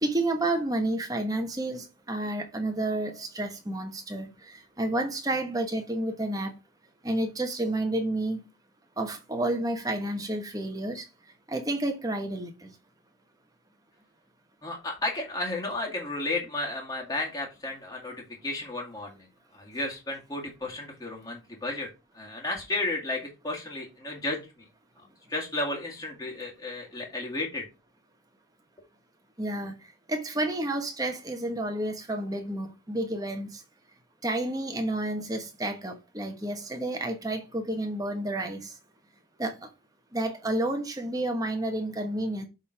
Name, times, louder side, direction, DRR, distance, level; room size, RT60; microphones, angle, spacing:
voice 1, 0.0-6.5 7.0-8.4 9.0-11.1 11.5-12.7 29.4-29.7 30.1-33.6 34.2-38.7 39.4-39.7 40.1-42.5, right 1 dB, 20° right, 1.1 m, -30 dB
voice 2, 14.6-19.3 19.5-21.9 22.1-24.7 25.3-27.7, left 2 dB, 20° left, 2.0 m, -33 dB
7.1 x 3.8 x 5.6 m
head